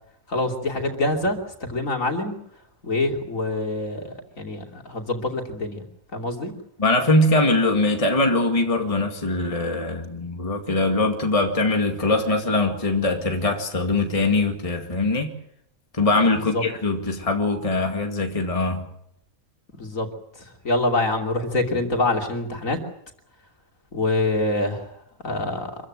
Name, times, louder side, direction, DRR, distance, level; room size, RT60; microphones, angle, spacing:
voice 1, 0.3-2.3 2.8-5.8 6.1-6.5 16.5-16.6 19.8-20.1 20.6-22.8 23.9-24.8 25.2-25.7, left 2 dB, 65° left, 3.5 m, -25 dB
voice 2, 6.8-15.3 15.9-18.9, left 2 dB, 25° left, 2.2 m, -22 dB
26.0 x 15.0 x 9.2 m
omnidirectional pair, 1.5 m